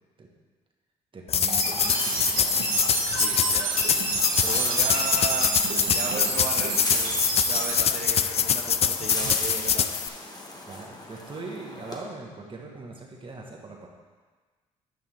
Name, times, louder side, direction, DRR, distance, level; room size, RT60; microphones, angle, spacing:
voice 1, 1.1-2.7 10.7-13.9, right 3 dB, 35° right, 0 dB, 1.7 m, -41 dB
sound 1, 1.3-10.1, left 8 dB, 45° left, 0.4 m, -25 dB
sound 2, 1.4-7.7, right 4 dB, 80° right, 1.5 m, -28 dB
sound 3, 1.6-12.0, left 2 dB, 25° left, 1.5 m, -37 dB
voice 2, 3.1-3.8 4.4-5.6 5.9-9.9, right 5 dB, 55° right, -2 dB, 0.8 m, -36 dB
9.6 x 5.6 x 3.8 m, 1.4 s
supercardioid pair, 60°, 15 cm